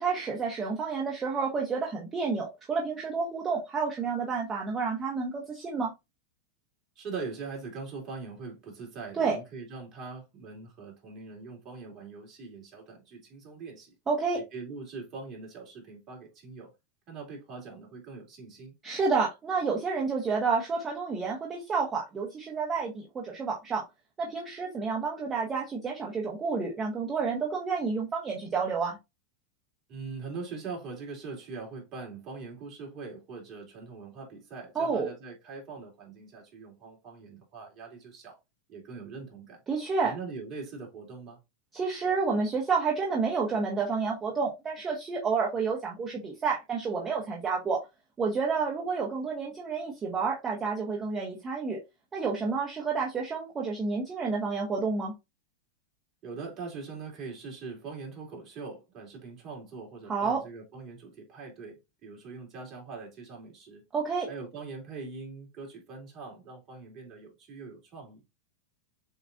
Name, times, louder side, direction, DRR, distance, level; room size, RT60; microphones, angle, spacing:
voice 1, 0.0-5.9 9.1-9.4 14.1-14.4 18.8-23.8 24.2-29.0 34.7-35.1 39.7-40.2 41.7-47.8 48.2-51.8 52.1-55.1 60.1-60.4 63.9-64.3, right 5 dB, 25° right, 1.1 m, -30 dB
voice 2, 7.0-13.9 14.3-16.7 17.1-18.7 29.9-38.4 38.7-39.6 40.0-41.4 56.2-63.8 64.3-68.2, right 4 dB, 40° right, 2.5 m, -42 dB
7.0 x 2.5 x 2.5 m
hypercardioid pair, 110°, 0 cm